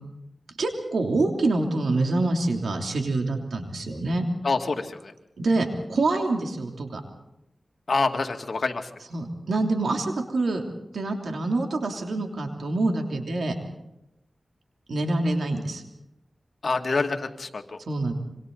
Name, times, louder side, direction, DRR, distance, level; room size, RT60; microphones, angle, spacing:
voice 1, 0.6-4.2 5.4-7.0 9.1-10.6 10.9-13.6 14.9-15.8 17.9-18.1, right 2 dB, 85° right, 3 dB, 3.1 m, -26 dB
voice 2, 4.4-5.1 7.9-8.9 16.6-17.8, left 3 dB, 70° left, 4 dB, 2.2 m, -26 dB
26.5 x 25.0 x 4.1 m, 0.88 s
cardioid pair, 50°, 0 cm